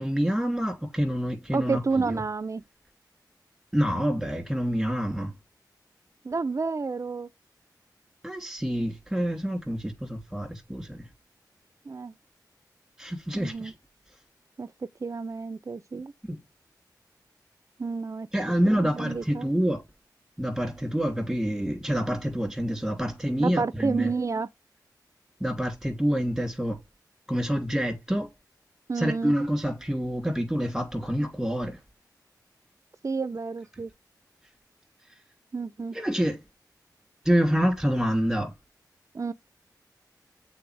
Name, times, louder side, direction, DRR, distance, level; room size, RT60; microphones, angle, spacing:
voice 1, 0.0-2.2 3.7-5.3 8.2-11.0 13.0-13.7 16.3-16.4 18.3-19.8 20.4-24.1 25.4-26.8 27.3-28.3 29.0-31.8 35.9-36.4 37.2-38.5, equal, 5° right, 2.8 m, -27 dB
voice 2, 1.5-2.6 6.2-7.3 11.9-12.2 13.3-13.7 14.6-16.1 17.8-18.3 18.7-19.5 23.4-24.5 28.9-29.3 33.0-33.9 35.5-36.0 39.1-39.3, right 4 dB, 45° right, 0.5 m, -30 dB
7.7 x 4.0 x 3.3 m
cardioid pair, 55°, 7 cm